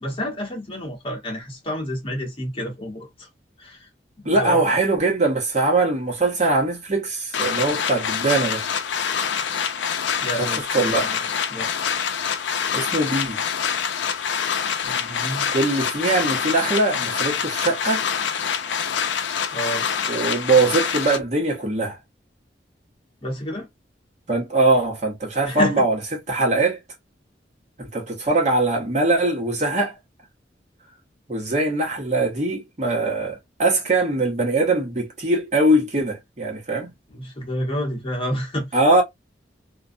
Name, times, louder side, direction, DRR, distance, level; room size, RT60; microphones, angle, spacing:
voice 1, 0.0-3.3 3.6-3.9 4.2-4.6 10.2-11.1 11.5-11.7 14.8-15.5 19.5-19.8 23.2-23.7 25.4-25.8 37.1-38.8, equal, 30° left, 0.9 m, -29 dB
voice 2, 4.2-8.6 10.4-11.1 12.7-13.4 15.5-18.0 20.1-22.0 24.3-26.0 26.3-26.8 27.8-30.0 31.3-36.9 38.7-39.0, right 2 dB, 40° right, 1.1 m, -21 dB
sound 1, 7.3-21.2, left 7 dB, 85° left, 0.4 m, -25 dB
2.5 x 2.2 x 2.4 m
head